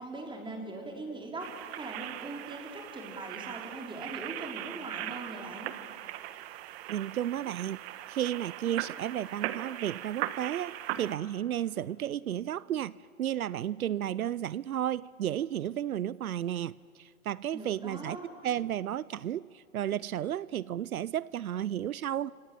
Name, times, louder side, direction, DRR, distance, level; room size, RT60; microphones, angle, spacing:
voice 1, 0.0-5.7 17.5-18.3, right 2 dB, 10° right, 1 dB, 4.8 m, -41 dB
sound 1, 1.4-11.2, right 14 dB, 45° right, 1.4 m, -39 dB
voice 2, 6.9-7.8 8.1-22.3, right 11 dB, 85° right, 22 dB, 0.6 m, -33 dB
29.5 x 26.0 x 7.5 m, 2.4 s
hypercardioid pair, 115°, 42 cm